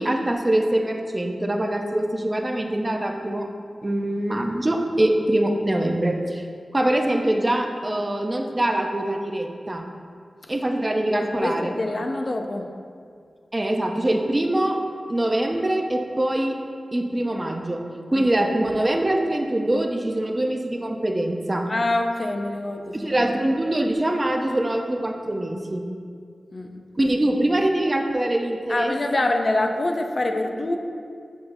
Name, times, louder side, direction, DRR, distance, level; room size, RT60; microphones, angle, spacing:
voice 1, 0.0-3.5 3.8-6.4 6.7-9.8 10.5-11.8 13.5-14.8 15.1-16.6 16.9-17.8 18.1-21.7 22.9-25.9 27.0-28.9, right 1 dB, 25° right, 3 dB, 0.5 m, -23 dB
voice 2, 11.1-12.7 18.1-18.2 21.7-23.1 26.5-26.7 28.7-30.8, left 2 dB, 40° left, 4 dB, 0.5 m, -25 dB
7.8 x 5.4 x 2.6 m, 2.2 s
wide cardioid pair, 110°, 0 cm